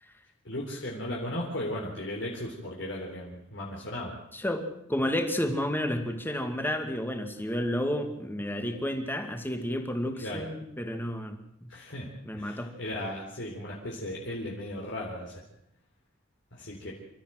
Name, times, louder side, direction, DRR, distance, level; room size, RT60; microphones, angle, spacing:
voice 1, 0.4-4.1 10.1-10.5 11.7-12.1 12.4-15.4 16.5-16.9, left 1 dB, 65° left, -3 dB, 4.1 m, -36 dB
voice 2, 4.3-11.7 12.3-12.7, left 1 dB, 10° left, 6 dB, 2.3 m, -31 dB
27.5 x 14.0 x 7.8 m, 0.77 s
head